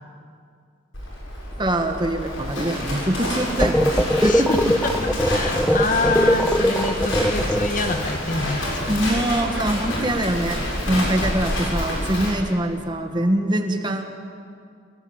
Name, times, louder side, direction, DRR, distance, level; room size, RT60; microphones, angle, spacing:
Livestock farm animals working animals, 0.9-12.3, left 1 dB, 75° left, 7.4 m, -28 dB
voice 1, 1.6-4.5 8.9-14.0, right 1 dB, 20° right, 5 dB, 1.7 m, -24 dB
sound 1, 3.6-8.0, equal, ahead, 0.8 m, -20 dB
voice 2, 4.2-9.0, left 3 dB, 40° left, 6 dB, 1.6 m, -27 dB
29.0 x 17.5 x 8.9 m, 2.2 s
head